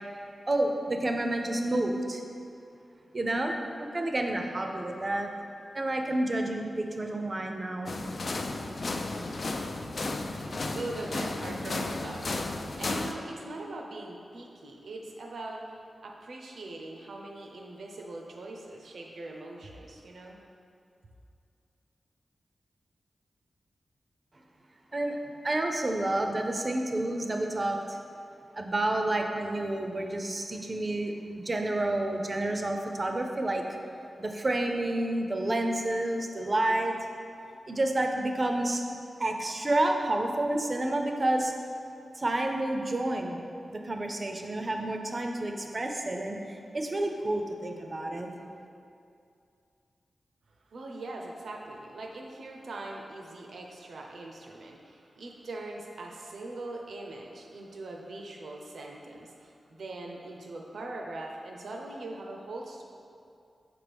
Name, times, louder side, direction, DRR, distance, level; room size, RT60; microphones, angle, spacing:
voice 1, 0.5-2.2 3.1-5.3 5.7-7.9 24.9-28.0 28.5-33.6 34.2-36.9 37.7-38.8 39.2-41.5 42.1-43.4 43.7-48.3, right 1 dB, 35° right, 3 dB, 0.5 m, -29 dB
sound 1, 7.9-13.1, left 2 dB, 50° left, 0.3 m, -33 dB
voice 2, 10.3-15.8 16.0-20.4 50.7-62.8, right 2 dB, 85° right, 1 dB, 0.6 m, -41 dB
6.0 x 4.7 x 3.4 m, 2.5 s
wide cardioid pair, 115°, 0 cm